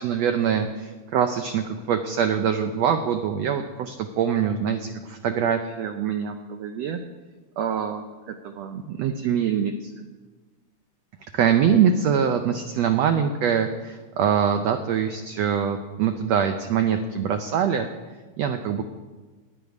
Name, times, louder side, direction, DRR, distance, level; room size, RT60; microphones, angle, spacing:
voice 1, 0.0-7.0 7.6-10.0 11.3-17.9 18.4-18.8, right 8 dB, 90° right, 7 dB, 1.4 m, -24 dB
12.0 x 9.4 x 9.5 m, 1.3 s
omnidirectional pair, 3.9 m